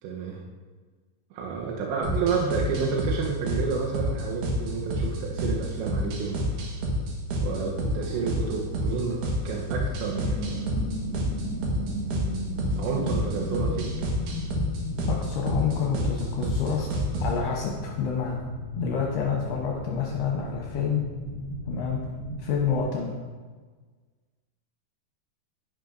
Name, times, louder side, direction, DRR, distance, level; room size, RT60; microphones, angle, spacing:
voice 1, 0.0-0.4 1.3-6.5 7.4-9.2 9.4-10.7 12.8-13.9, right 5 dB, 90° right, -2 dB, 3.2 m, -30 dB
sound 1, 2.0-17.4, equal, 70° right, 3.2 m, -29 dB
sound 2, 10.1-22.9, equal, 45° right, 2.5 m, -35 dB
voice 2, 15.1-18.4 18.8-21.0 21.7-22.0 22.4-23.1, left 7 dB, 75° left, -1 dB, 2.7 m, -28 dB
11.5 x 10.5 x 2.6 m, 1.4 s
omnidirectional pair, 5.1 m